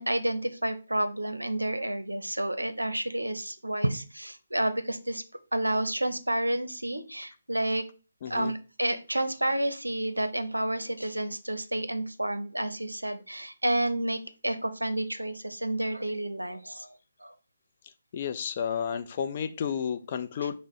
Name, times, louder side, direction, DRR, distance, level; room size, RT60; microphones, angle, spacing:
voice 1, 0.0-5.2 5.5-7.8 8.3-16.9 17.2-17.3, right 1 dB, 90° right, 10 dB, 0.6 m, -30 dB
voice 2, 8.2-8.5 18.1-20.5, left 7 dB, 40° left, 8 dB, 0.5 m, -31 dB
5.3 x 2.1 x 4.7 m, 0.34 s
figure-of-eight pair, 145°, 0 cm